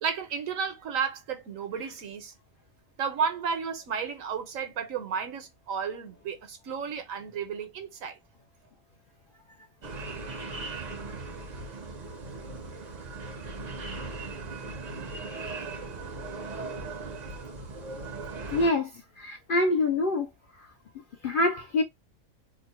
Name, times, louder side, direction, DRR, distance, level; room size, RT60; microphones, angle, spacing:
voice 1, 0.0-2.3 3.0-8.2, right 6 dB, 85° right, 1.2 m, -32 dB
sound 1, 9.8-18.7, right 3 dB, 45° right, 0.6 m, -38 dB
voice 2, 18.5-18.9 19.2-20.3 21.2-21.8, left 2 dB, 65° left, 0.5 m, -25 dB
2.9 x 2.1 x 4.1 m
omnidirectional pair, 1.4 m